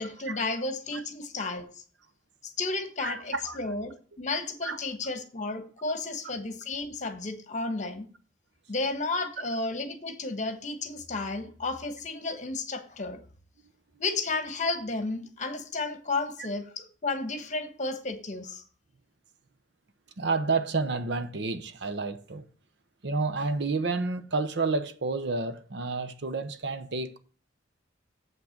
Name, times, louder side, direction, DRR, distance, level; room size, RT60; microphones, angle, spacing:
voice 1, 0.0-1.8 2.4-8.1 8.7-13.2 14.0-18.6, left 3 dB, 40° left, 1.3 m, -32 dB
voice 2, 3.0-3.6 4.6-4.8 20.2-22.5 23.0-27.2, right 3 dB, 60° right, 0.8 m, -30 dB
7.5 x 6.0 x 6.5 m
head